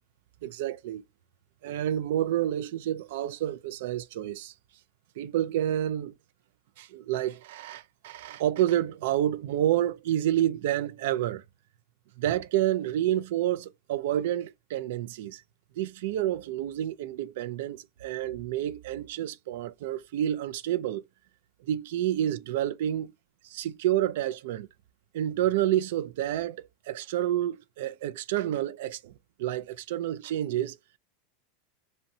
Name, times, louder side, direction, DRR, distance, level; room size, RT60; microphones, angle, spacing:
voice 1, 0.4-1.0 1.6-4.5 5.2-6.1 6.8-11.4 12.2-15.4 15.8-21.0 21.6-23.1 23.4-24.7 25.1-29.1 29.4-30.8, right 12 dB, 75° right, 0.3 m, -29 dB
2.6 x 2.1 x 2.6 m
supercardioid pair, 135°, 0 cm